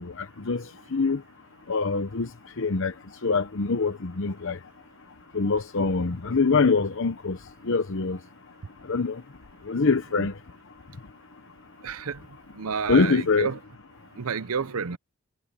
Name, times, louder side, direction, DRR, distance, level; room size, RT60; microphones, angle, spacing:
voice 1, 0.2-0.6 0.9-1.2 1.7-2.3 2.6-2.9 3.2-4.6 5.3-7.4 7.7-8.2 8.9-9.1 9.7-10.3 12.9-13.5, left 4 dB, 60° left, 0.9 m, -24 dB
voice 2, 11.8-12.2 12.6-13.6 14.2-15.0, right 6 dB, 75° right, 0.7 m, -30 dB
head